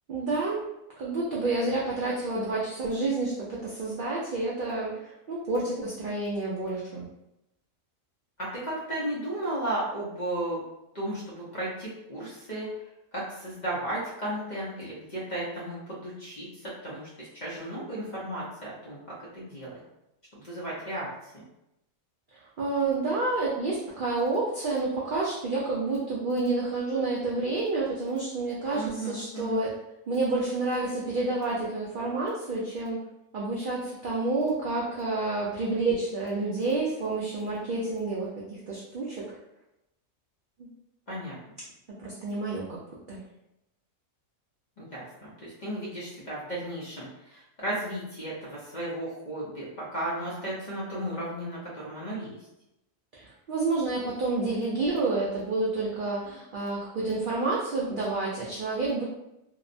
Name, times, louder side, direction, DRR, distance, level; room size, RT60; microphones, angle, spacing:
voice 1, 0.1-0.7 1.0-7.1 22.3-29.7 30.1-33.0 33.3-39.2 42.0-42.8 43.1-43.2 53.1-59.0, right 3 dB, 80° right, -5 dB, 0.4 m, -29 dB
voice 2, 8.4-10.6 10.9-12.7 13.1-19.8 20.3-21.3 28.7-29.6 41.1-41.4 44.8-52.4, right 1 dB, 45° left, -7 dB, 0.6 m, -34 dB
2.8 x 2.0 x 2.5 m, 0.87 s
omnidirectional pair, 1.4 m